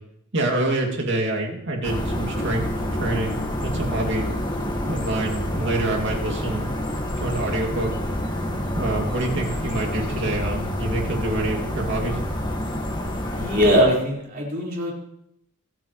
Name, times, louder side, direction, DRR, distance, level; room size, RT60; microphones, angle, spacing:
voice 1, 0.3-2.7 2.9-4.2 4.9-6.6 7.2-7.9 8.7-12.2, right 2 dB, 55° right, 0 dB, 2.6 m, -26 dB
sound 1, 1.8-13.8, equal, 20° left, 1.9 m, -28 dB
voice 2, 13.3-14.9, equal, 40° right, -4 dB, 4.7 m, -21 dB
26.5 x 9.0 x 3.2 m, 0.74 s
head